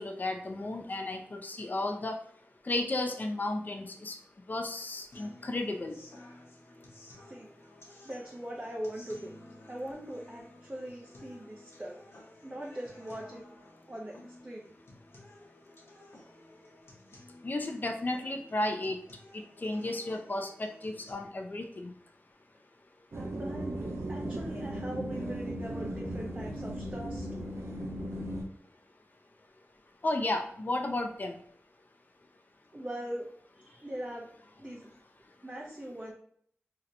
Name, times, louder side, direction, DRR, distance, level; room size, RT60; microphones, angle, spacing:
voice 1, 0.0-2.2 2.7-4.1 4.5-5.9 17.4-19.0 19.6-21.9 30.0-31.4, left 2 dB, 40° left, 4 dB, 0.4 m, -33 dB
sound 1, 5.1-21.1, left 1 dB, 65° left, 0.9 m, -54 dB
voice 2, 8.0-9.3 9.7-12.0 12.4-13.4 13.9-14.7 23.1-27.4 32.7-33.3 33.6-34.3 34.6-34.9 35.4-36.1, right 1 dB, 25° right, -2 dB, 0.5 m, -41 dB
sound 2, 23.1-28.4, right 1 dB, 70° right, 0.6 m, -37 dB
2.8 x 2.1 x 3.8 m, 0.64 s
wide cardioid pair, 55°, 5 cm